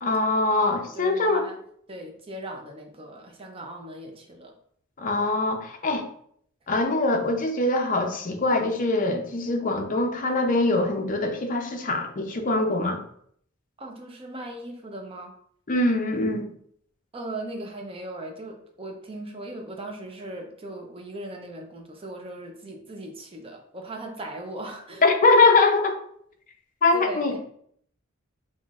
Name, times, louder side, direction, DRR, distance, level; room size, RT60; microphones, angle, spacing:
voice 1, 0.0-1.4 5.0-6.0 6.7-13.0 15.7-16.5 25.0-25.9 26.8-27.3, left 2 dB, 40° left, 4 dB, 0.6 m, -23 dB
voice 2, 0.7-1.6 1.9-4.5 13.8-15.3 17.1-25.0 26.9-27.4, right 1 dB, 25° right, 3 dB, 0.6 m, -38 dB
5.6 x 2.5 x 2.5 m, 0.64 s
head